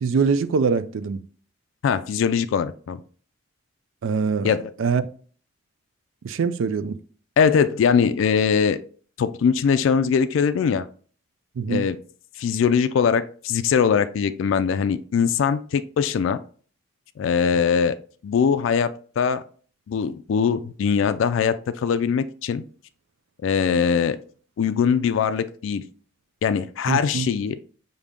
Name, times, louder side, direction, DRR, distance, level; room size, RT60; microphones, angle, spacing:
voice 1, 0.0-1.2 4.0-4.5 4.8-5.0 6.2-7.0 11.6-11.9 26.9-27.3, right 5 dB, 75° right, 0.4 m, -23 dB
voice 2, 1.8-3.0 4.4-4.6 7.4-8.8 9.2-10.9 11.7-12.0 12.4-16.4 17.2-18.0 18.2-19.4 19.9-22.6 23.4-24.2 24.6-25.8 26.4-27.6, left 6 dB, 75° left, 0.3 m, -21 dB
5.1 x 2.7 x 3.4 m
head